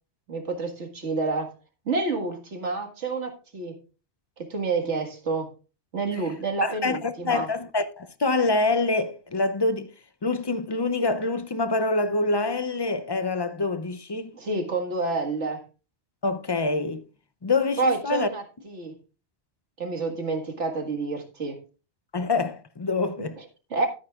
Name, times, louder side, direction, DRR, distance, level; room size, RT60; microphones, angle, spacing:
voice 1, 0.3-1.5 1.9-3.8 4.4-5.5 5.9-7.5 14.4-15.6 17.8-19.0 19.8-21.6 23.2-23.9, right 3 dB, 85° right, 2.1 m, -29 dB
voice 2, 6.6-9.9 10.2-14.3 16.2-17.0 17.4-18.3 22.1-23.4, left 3 dB, 30° left, 0.5 m, -26 dB
13.0 x 9.4 x 2.4 m
omnidirectional pair, 1.2 m